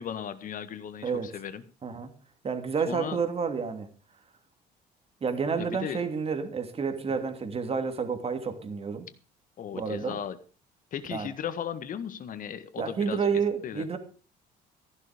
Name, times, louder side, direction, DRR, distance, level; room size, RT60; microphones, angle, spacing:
voice 1, 0.0-1.6 2.9-3.2 5.6-6.0 9.6-10.4 10.9-13.3 13.6-13.9, left 8 dB, 55° left, 12 dB, 1.7 m, -36 dB
voice 2, 2.4-3.9 5.2-9.1 9.7-10.2 11.1-11.3 12.8-14.0, right 5 dB, 35° right, 7 dB, 2.8 m, -30 dB
14.5 x 11.5 x 5.2 m, 0.37 s
cardioid pair, 110°, 17 cm